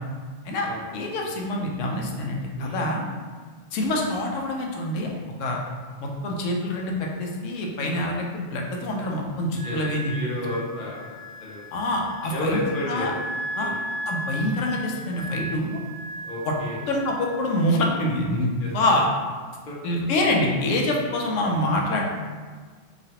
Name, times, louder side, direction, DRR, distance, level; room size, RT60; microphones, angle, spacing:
voice 1, 0.4-3.1 3.7-5.1 5.4-5.6 6.0-10.1 11.7-12.6 12.8-13.1 13.6-13.7 14.1-15.8 16.5-16.6 16.9-19.1 19.8-22.0, left 1 dB, 85° left, 0 dB, 0.9 m, -26 dB
Wind instrument woodwind instrument, 9.5-17.8, equal, 10° right, 0.4 m, -36 dB
voice 2, 10.1-11.7 12.3-13.1 13.5-13.8 16.2-16.8 18.6-18.7 19.7-19.8 20.1-20.2, left 1 dB, 55° left, -4 dB, 0.7 m, -32 dB
3.0 x 2.4 x 2.7 m, 1.5 s
omnidirectional pair, 1.3 m